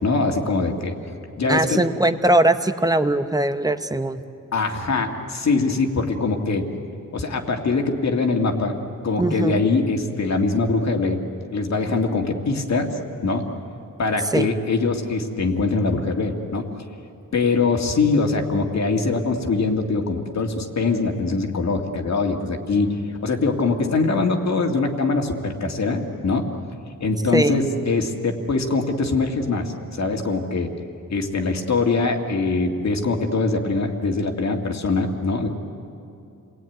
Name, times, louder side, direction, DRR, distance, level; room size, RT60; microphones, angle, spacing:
voice 1, 0.0-0.9 1.4-1.8 4.5-6.6 7.1-8.8 9.0-11.2 11.5-13.5 14.0-16.7 17.3-26.5 27.0-30.7 31.1-35.5, left 3 dB, 55° left, 3 dB, 2.2 m, -23 dB
voice 2, 1.5-4.2 9.2-9.6 14.3-14.5 27.3-27.5, right 1 dB, 10° right, 9 dB, 0.8 m, -20 dB
30.0 x 20.0 x 9.4 m, 2.7 s
wide cardioid pair, 175°, 33 cm